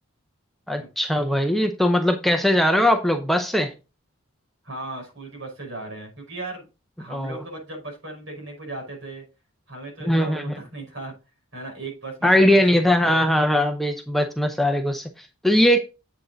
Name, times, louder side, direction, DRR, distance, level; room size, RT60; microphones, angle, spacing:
voice 1, 0.7-3.7 7.1-7.4 10.0-10.5 12.2-15.8, left 1 dB, ahead, 0.6 m, -20 dB
voice 2, 4.6-6.7 7.0-9.2 9.7-11.1 11.5-13.3, right 2 dB, 60° right, 5.6 m, -37 dB
8.1 x 6.1 x 3.9 m
head